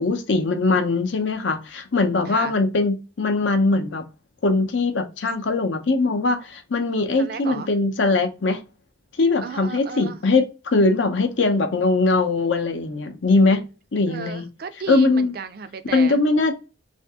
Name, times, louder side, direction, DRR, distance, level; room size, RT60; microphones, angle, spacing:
voice 1, 0.0-4.0 4.4-8.6 9.2-13.6 13.9-14.5 14.9-15.3 15.9-16.5, left 3 dB, 75° left, 0.6 m, -21 dB
voice 2, 7.2-7.7 9.4-10.2 14.1-16.2, right 5 dB, 50° right, 0.3 m, -34 dB
2.7 x 2.6 x 3.4 m
head